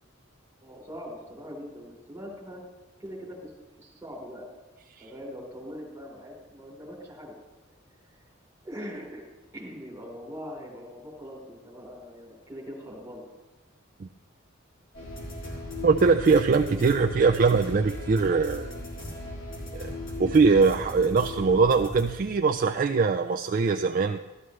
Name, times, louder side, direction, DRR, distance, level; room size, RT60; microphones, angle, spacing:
voice 1, 0.6-2.6 3.0-3.5 3.8-4.5 5.0-7.3 8.6-9.2 9.5-13.2 16.7-17.0, equal, 15° right, -4 dB, 3.6 m, -41 dB
sound 1, 14.9-23.1, left 1 dB, 65° left, 3.8 m, -37 dB
voice 2, 15.8-18.7 19.7-19.9 20.2-24.2, right 4 dB, 45° right, 4 dB, 0.4 m, -22 dB
13.5 x 13.0 x 3.2 m, 1.1 s
head